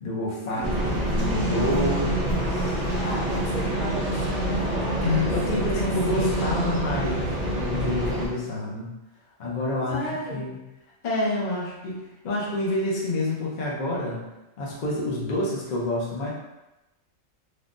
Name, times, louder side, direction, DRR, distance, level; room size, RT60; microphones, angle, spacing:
voice 1, 0.0-2.8 5.0-7.3 7.5-8.9 9.4-10.6 11.0-14.2 14.6-16.3, left 2 dB, 45° left, -5 dB, 0.6 m, -28 dB
sound 1, 0.6-8.3, right 1 dB, 40° right, 0.6 m, -26 dB
voice 2, 3.0-5.3 5.7-6.7 9.9-10.6, left 1 dB, 75° left, -5 dB, 1.3 m, -35 dB
3.4 x 2.2 x 2.5 m, 0.99 s
omnidirectional pair, 1.4 m